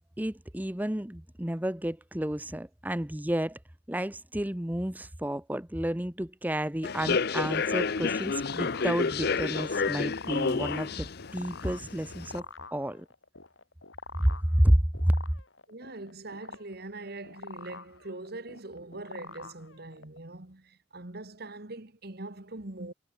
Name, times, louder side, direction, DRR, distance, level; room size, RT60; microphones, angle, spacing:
voice 1, 0.2-3.6 3.9-12.4 12.7-13.1 14.2-15.1, equal, 10° right, 0.9 m, -30 dB
Human voice / Subway metro underground, 6.8-12.4, left 5 dB, 55° left, 0.7 m, -30 dB
sound 1, 7.9-20.2, left 4 dB, 85° left, 4.2 m, -47 dB
voice 2, 15.7-22.9, right 2 dB, 55° right, 1.8 m, -42 dB
head